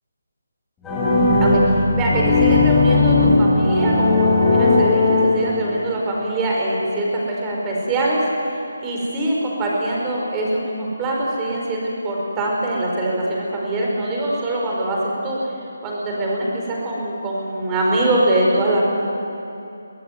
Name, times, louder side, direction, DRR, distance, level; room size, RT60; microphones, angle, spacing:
sound 1, 0.8-5.8, left 3 dB, 10° left, 5.3 m, -17 dB
voice 1, 1.4-8.2 8.8-15.0 15.2-15.6 15.8-18.8, right 1 dB, 15° right, -3 dB, 4.8 m, -23 dB
23.0 x 17.0 x 9.5 m, 2.8 s
figure-of-eight pair, 165°, 0 cm